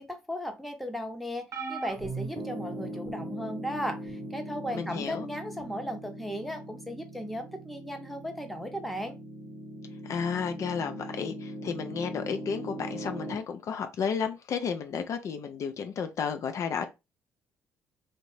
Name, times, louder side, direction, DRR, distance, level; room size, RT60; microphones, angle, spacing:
voice 1, 0.0-9.2, equal, ahead, 0.7 m, -36 dB
sound 1, 1.5-3.3 4.1-4.3 5.6-5.7, right 4 dB, 55° right, 1.0 m, -39 dB
Piano, 2.3-13.4, right 1 dB, 30° right, 0.9 m, -40 dB
voice 2, 4.7-5.3 10.0-16.8, left 6 dB, 55° left, 0.4 m, -32 dB
2.6 x 2.1 x 3.1 m
supercardioid pair, 70°, 6 cm